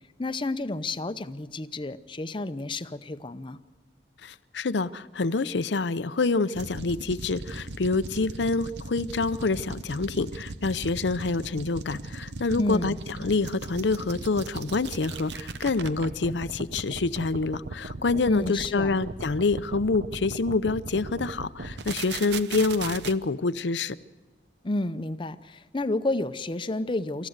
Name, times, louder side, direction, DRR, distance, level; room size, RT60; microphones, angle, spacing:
voice 1, 0.2-3.6 12.6-13.0 18.3-19.0 24.6-27.3, left 2 dB, 30° left, 12 dB, 0.7 m, -30 dB
voice 2, 4.2-24.0, left 3 dB, 90° left, 15 dB, 0.7 m, -27 dB
sound 1, 6.5-23.1, right 3 dB, 80° right, 0.9 m, -38 dB
26.5 x 14.5 x 8.0 m, 1.4 s
head